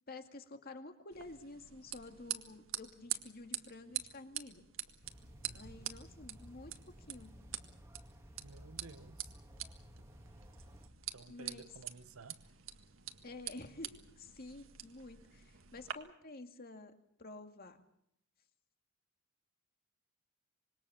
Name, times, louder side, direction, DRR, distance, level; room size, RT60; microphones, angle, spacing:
voice 1, 0.1-4.6 5.5-7.3 11.3-11.7 13.2-16.9 17.2-17.8, left 2 dB, 45° left, 2.3 m, -50 dB
sound 1, 1.1-15.9, right 11 dB, 65° right, 1.9 m, -46 dB
sound 2, 5.0-10.9, equal, 15° right, 1.9 m, -55 dB
voice 2, 5.5-5.9 8.4-9.4 11.1-12.5, right 3 dB, 85° right, 1.1 m, -54 dB
26.0 x 21.5 x 7.0 m
head